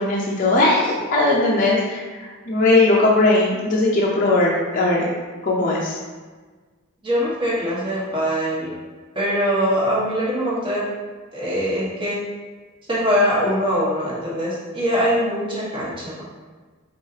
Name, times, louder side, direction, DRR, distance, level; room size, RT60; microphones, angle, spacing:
voice 1, 0.0-2.2 2.5-5.1 5.4-6.0, left 2 dB, 40° left, -5 dB, 0.7 m, -18 dB
voice 2, 7.0-8.7 9.1-10.9 11.3-12.2 12.9-16.2, equal, 25° right, -7 dB, 1.2 m, -22 dB
4.7 x 3.8 x 2.8 m, 1.4 s
head